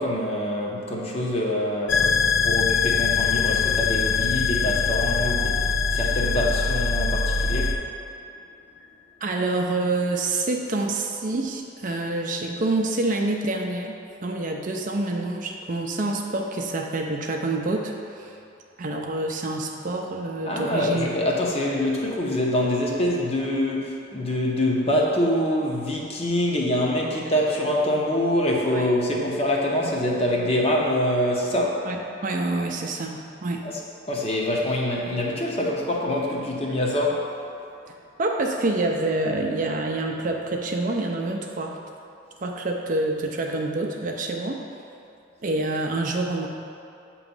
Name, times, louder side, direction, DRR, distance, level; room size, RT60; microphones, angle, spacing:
voice 1, 0.0-7.8 20.4-31.9 33.6-33.7 34.1-37.3, left 1 dB, 30° left, -2 dB, 0.8 m, -25 dB
sound 1, 1.9-7.7, left 5 dB, 70° left, 0.5 m, -23 dB
voice 2, 9.2-14.0 14.2-18.4 18.8-21.1 28.7-28.9 31.9-33.6 37.9-41.8 42.4-44.6 45.4-46.5, right 2 dB, 40° right, 1 dB, 0.5 m, -27 dB
7.8 x 3.0 x 5.3 m, 2.6 s
head